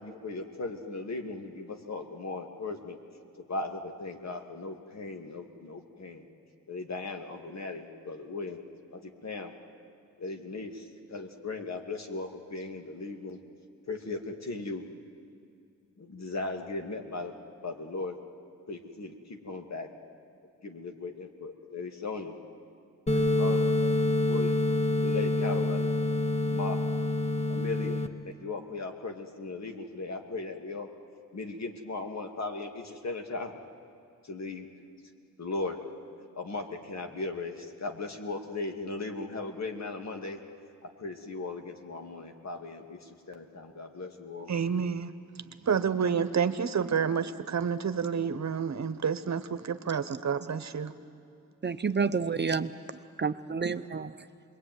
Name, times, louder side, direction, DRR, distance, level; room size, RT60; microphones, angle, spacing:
voice 1, 0.0-3.0 3.4-6.2 6.7-8.6 8.9-9.5 10.2-13.4 13.9-14.9 16.0-17.3 17.6-18.2 18.7-19.9 20.6-22.4 23.1-23.7 24.3-24.6 25.0-25.9 26.5-26.8 27.5-30.9 31.3-33.5 34.2-34.7 35.4-35.8 36.3-40.4 40.8-44.5, left 3 dB, 55° left, 4 dB, 2.5 m, -37 dB
sound 1, 23.1-28.1, left 2 dB, 20° left, 1.3 m, -27 dB
voice 2, 44.5-45.1 45.6-50.9, right 6 dB, 60° right, 11 dB, 1.2 m, -29 dB
voice 3, 51.6-52.7 53.2-54.1, right 5 dB, 35° right, 10 dB, 0.7 m, -29 dB
26.0 x 21.5 x 9.5 m, 2.4 s
cardioid pair, 80°, 32 cm